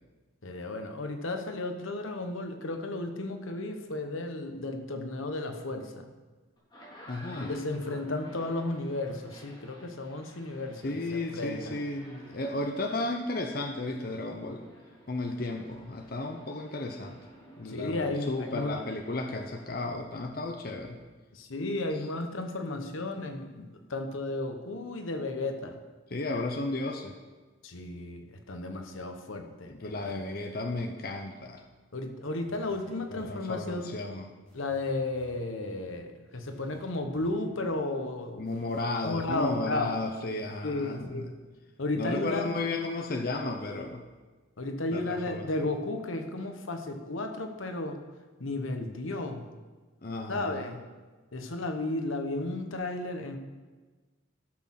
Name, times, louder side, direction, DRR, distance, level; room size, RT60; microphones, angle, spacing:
voice 1, 0.4-6.1 7.4-11.7 17.7-18.8 21.3-25.8 27.6-29.9 31.9-33.9 34.5-38.4 39.0-39.9 40.6-41.3 41.8-42.5 44.6-48.0 48.4-49.5 50.3-50.8 51.3-53.4, left 2 dB, 80° left, 6 dB, 1.1 m, -33 dB
sound 1, 6.6-19.9, equal, 20° left, 3.3 m, -54 dB
voice 2, 7.1-7.6 10.8-14.6 15.1-17.2 17.6-21.0 26.1-27.2 29.7-31.6 33.1-34.3 38.4-41.3 41.9-44.0 44.9-45.5 50.0-50.8, left 2 dB, 45° left, 4 dB, 0.7 m, -34 dB
sound 2, 32.5-33.7 34.5-35.6 36.4-37.7 38.4-39.7, equal, 5° left, 2.4 m, -56 dB
13.0 x 6.4 x 5.8 m, 1.3 s
head